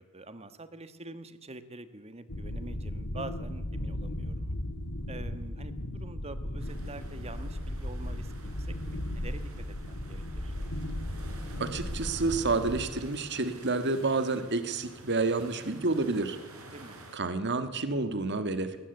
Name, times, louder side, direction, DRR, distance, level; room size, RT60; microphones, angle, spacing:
voice 1, 0.0-4.5 5.1-9.4 9.8-10.5 16.7-17.0, right 2 dB, 30° right, 12 dB, 1.4 m, -46 dB
sound 1, 2.3-12.9, left 1 dB, 65° left, 1.9 m, -36 dB
sound 2, 6.6-17.2, right 2 dB, 70° right, 4.6 m, -50 dB
voice 2, 11.6-16.4 17.1-18.8, right 3 dB, 50° right, 10 dB, 1.6 m, -29 dB
20.5 x 20.0 x 8.2 m, 1.3 s
head